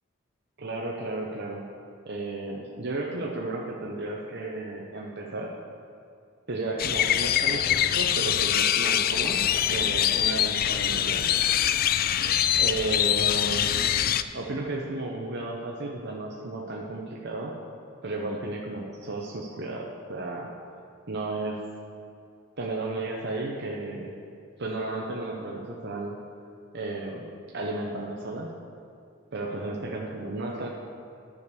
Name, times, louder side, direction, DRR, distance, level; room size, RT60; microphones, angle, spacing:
voice 1, 0.6-1.7 2.0-5.5 6.5-9.4 9.7-11.3 12.6-13.7 14.3-17.6 18.0-20.5 21.1-21.6 22.6-24.1 24.6-26.2 26.7-27.3 27.5-28.5 29.3-30.7, right 2 dB, 55° right, -2 dB, 0.9 m, -33 dB
sound 1, 6.8-14.2, left 10 dB, 45° left, 0.3 m, -24 dB
11.0 x 5.2 x 6.8 m, 2.5 s
head